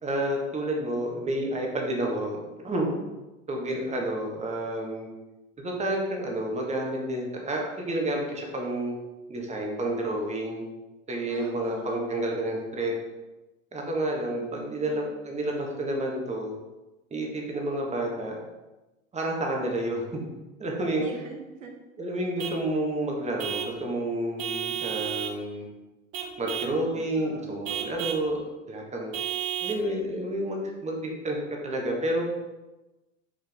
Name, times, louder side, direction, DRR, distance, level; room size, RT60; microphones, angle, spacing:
voice 1, 0.0-2.9 3.5-5.1 5.6-8.9 9.3-10.6 11.1-13.0 13.7-16.5 17.1-18.4 19.1-20.2 20.6-21.1 22.0-25.7 26.4-28.4 28.7-29.2 29.6-31.4 31.6-32.3, right 1 dB, 15° right, 0 dB, 1.5 m, -30 dB
voice 2, 11.3-12.3 14.4-15.1 21.0-21.7 26.9-27.5, right 3 dB, 75° right, 1 dB, 1.1 m, -44 dB
Vehicle horn car horn honking / Truck, 22.4-22.7 23.4-23.8 24.4-25.4 26.1-26.8 27.6-28.3 29.1-29.9, right 10 dB, 40° right, 1.0 m, -32 dB
6.2 x 5.1 x 3.6 m, 1.1 s
figure-of-eight pair, 75°, 39 cm